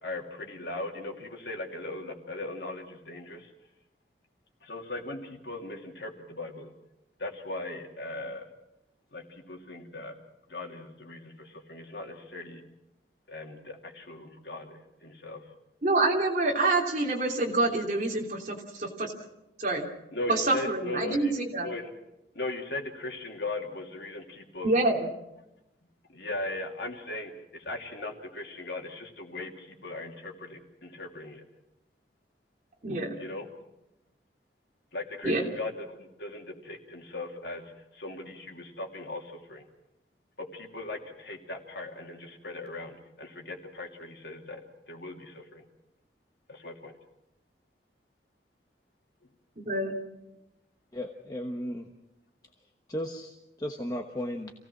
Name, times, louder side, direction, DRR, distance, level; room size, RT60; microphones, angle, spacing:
voice 1, 0.0-3.5 4.6-6.7 7.2-8.5 9.1-10.2 10.5-12.6 13.3-15.5 20.1-21.3 21.6-21.9 22.3-24.8 26.1-31.4 33.2-33.7 34.9-39.6 40.4-45.6 46.5-46.9, left 2 dB, 70° left, 1 dB, 2.9 m, -39 dB
voice 2, 15.8-19.1 19.6-19.9 20.3-21.7 24.6-25.1 32.8-33.1 35.2-35.4 49.7-49.9, right 2 dB, 45° right, 0 dB, 3.0 m, -27 dB
voice 3, 50.9-51.9 52.9-54.5, equal, 20° left, 3 dB, 1.1 m, -35 dB
27.0 x 17.0 x 6.1 m, 0.92 s
head